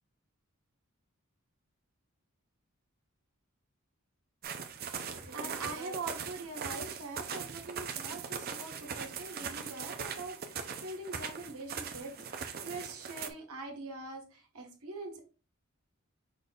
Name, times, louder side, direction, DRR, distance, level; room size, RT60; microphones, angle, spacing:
sound 1, 4.4-13.3, right 6 dB, 45° right, 0.6 m, -40 dB
voice 1, 5.1-15.2, right 3 dB, 80° right, 3 dB, 1.4 m, -43 dB
5.0 x 4.2 x 2.4 m, 0.34 s
head